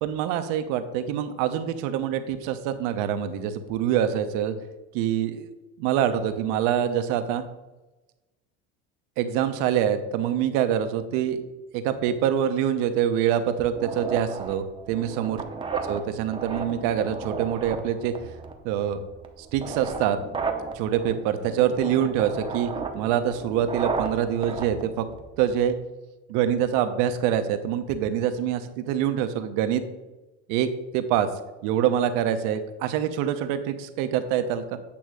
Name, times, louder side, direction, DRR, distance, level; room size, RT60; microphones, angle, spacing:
voice 1, 0.0-4.5 4.9-5.5 5.8-7.4 9.2-11.4 11.7-15.4 15.7-18.1 18.6-19.1 19.4-20.2 20.7-25.1 25.4-25.7 26.3-29.8 30.5-30.7 30.9-31.3 31.6-34.8, right 9 dB, 70° right, 9 dB, 0.9 m, -25 dB
sound 1, 13.7-25.7, right 4 dB, 15° right, 0.8 m, -35 dB
8.6 x 3.1 x 6.2 m, 1.1 s
supercardioid pair, 115°, 34 cm